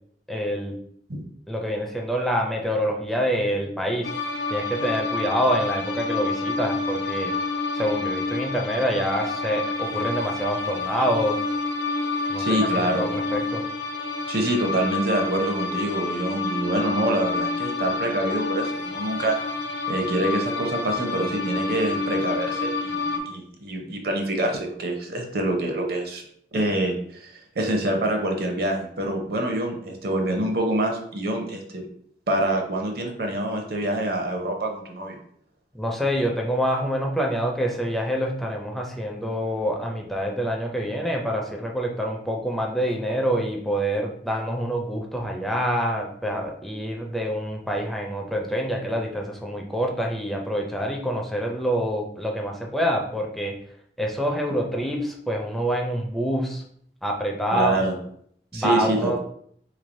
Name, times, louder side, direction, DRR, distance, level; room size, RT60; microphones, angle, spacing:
voice 1, 0.3-0.8 1.5-4.1 4.5-7.3 7.8-11.4 12.3-12.6 13.0-13.6 35.7-53.6 54.0-56.6 57.0-57.9 58.5-59.2, equal, ahead, 0 dB, 0.4 m, -26 dB
sound 1, 4.0-23.2, left 3 dB, 65° left, 0.5 m, -28 dB
voice 2, 12.4-13.1 14.3-19.4 19.9-26.2 26.5-31.8 32.3-35.1 57.5-57.9 58.5-59.2, right 1 dB, 60° right, 2 dB, 0.7 m, -26 dB
3.7 x 3.2 x 2.6 m, 0.65 s
head